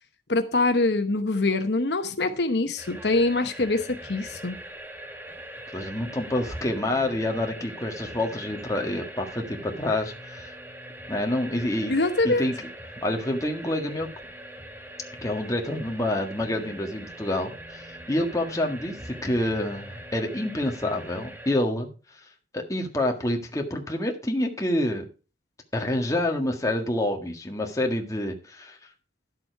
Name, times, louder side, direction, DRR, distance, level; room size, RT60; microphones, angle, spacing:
voice 1, 0.3-4.5 11.9-12.5, left 2 dB, 70° left, 8 dB, 1.0 m, -24 dB
sound 1, 2.8-21.6, right 1 dB, 10° right, 1.2 m, -42 dB
voice 2, 5.7-10.5 11.1-11.9 12.2-12.7 13.0-14.1 15.2-21.9 22.5-25.0 25.7-28.8, left 1 dB, 20° left, 3 dB, 1.6 m, -27 dB
11.5 x 7.6 x 4.6 m, 0.33 s
head